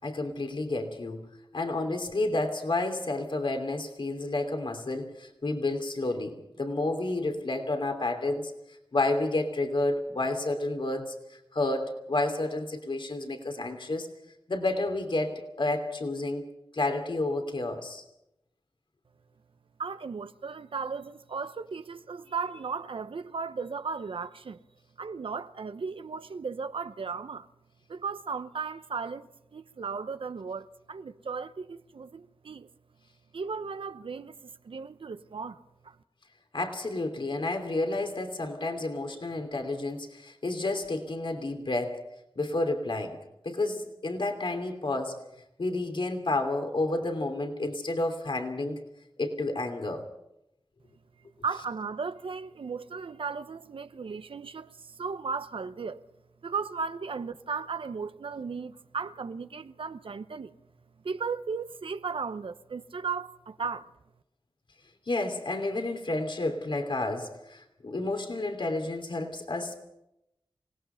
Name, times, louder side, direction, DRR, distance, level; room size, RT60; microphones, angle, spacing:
voice 1, 0.0-1.3 1.5-8.5 8.9-11.1 11.5-14.1 14.5-18.0 36.5-42.0 42.4-43.2 43.4-45.2 45.6-48.8 49.2-50.0 65.1-69.8, left 2 dB, 70° left, 3.0 m, -30 dB
voice 2, 19.8-24.6 25.0-27.5 27.9-32.7 33.3-36.0 51.4-56.0 56.4-60.5 61.0-63.9, right 5 dB, 85° right, 0.9 m, -36 dB
27.5 x 18.0 x 5.7 m
wide cardioid pair, 50°, 9 cm